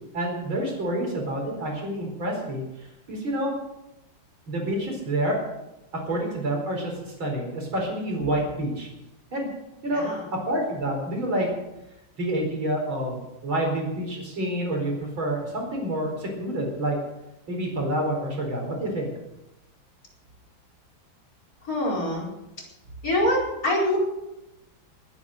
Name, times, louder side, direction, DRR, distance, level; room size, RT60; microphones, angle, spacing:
voice 1, 0.1-3.5 4.5-5.4 6.1-8.9 9.3-9.5 9.8-11.5 12.2-17.0 17.5-19.1, right 1 dB, 85° right, 1 dB, 5.2 m, -28 dB
voice 2, 9.9-10.3 21.6-22.3 23.0-24.0, left 1 dB, 45° left, -3 dB, 5.1 m, -25 dB
19.5 x 9.7 x 6.5 m, 0.94 s
omnidirectional pair, 2.1 m